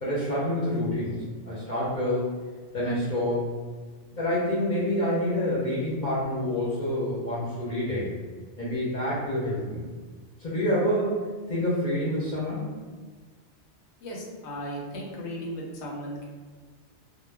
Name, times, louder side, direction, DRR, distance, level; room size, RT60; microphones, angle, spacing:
voice 1, 0.0-2.4 2.7-3.5 4.1-8.1 8.6-9.8 10.4-12.7, left 1 dB, 50° left, -8 dB, 0.7 m, -27 dB
voice 2, 14.0-16.3, equal, 80° left, -2 dB, 0.9 m, -36 dB
2.2 x 2.1 x 3.2 m, 1.4 s
omnidirectional pair, 1.2 m